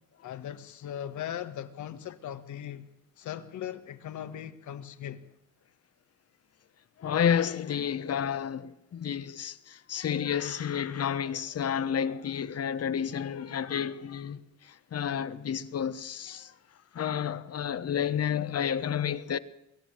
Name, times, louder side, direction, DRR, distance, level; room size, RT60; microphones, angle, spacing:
voice 1, 0.2-2.9 3.2-5.2, left 10 dB, 75° left, 1.8 m, -39 dB
voice 2, 7.0-16.5 16.9-19.4, left 8 dB, 55° left, 1.3 m, -30 dB
23.5 x 13.5 x 9.0 m
cardioid pair, 90°, 30 cm